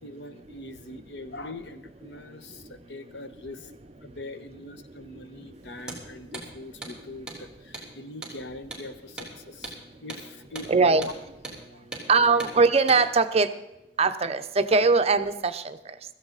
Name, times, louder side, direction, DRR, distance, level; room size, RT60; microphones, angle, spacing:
voice 1, 0.0-3.7 4.0-11.1 11.7-12.4, left 2 dB, 75° left, 10 dB, 1.0 m, -42 dB
Hammer, 5.8-6.0 6.3-6.5 6.8-7.0 7.3-7.4 7.7-7.9 8.2-8.4 8.7-8.9 9.2-9.3 9.6-9.8 10.1-10.2 10.5-10.7 11.0-11.2 11.4-11.6 11.9-12.1 12.4-12.5 12.9-13.0, right 2 dB, 5° right, 3.1 m, -38 dB
voice 2, 10.7-11.0 12.1-13.5 14.0-16.0, right 4 dB, 35° right, 9 dB, 0.7 m, -21 dB
16.0 x 14.0 x 4.0 m, 0.91 s
head